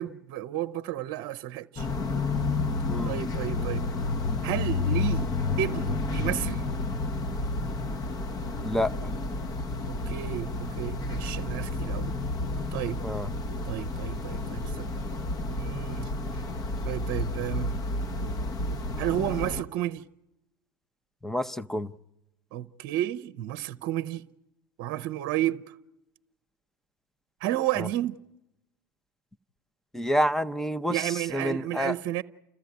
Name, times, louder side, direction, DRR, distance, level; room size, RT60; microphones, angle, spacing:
voice 1, 0.0-1.9 3.0-3.9 4.4-5.3 5.6-6.6 9.9-12.1 12.7-13.0 13.6-14.9 15.5-16.1 16.8-17.7 19.0-20.0 22.5-24.2 24.8-25.8 27.4-28.2 30.9-32.2, right 13 dB, 55° right, 0.8 m, -31 dB
sound 1, 1.8-19.6, left 3 dB, 35° left, 1.1 m, -30 dB
voice 2, 2.9-3.2 8.6-8.9 13.0-13.3 21.2-21.9 27.8-27.9 29.9-32.0, equal, 5° left, 0.8 m, -28 dB
29.5 x 14.5 x 9.4 m
hypercardioid pair, 85°, 11 cm